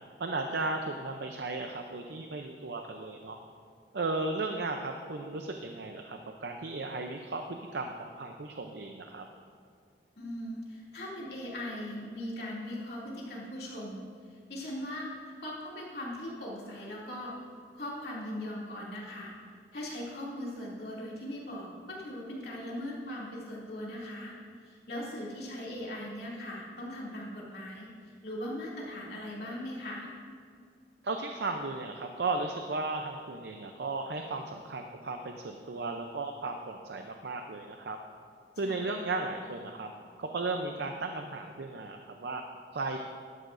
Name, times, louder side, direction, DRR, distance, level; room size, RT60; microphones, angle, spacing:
voice 1, 0.2-3.4 3.9-9.3 31.0-38.0 38.6-39.9 40.2-42.4 42.7-43.0, right 3 dB, 70° right, 4 dB, 0.6 m, -35 dB
voice 2, 10.2-14.0 14.5-15.1 15.4-17.3 17.7-19.3 19.7-24.3 24.6-27.9 28.2-30.1 38.6-39.0, left 1 dB, 60° left, -5 dB, 2.6 m, -39 dB
12.5 x 12.0 x 2.6 m, 2.2 s
head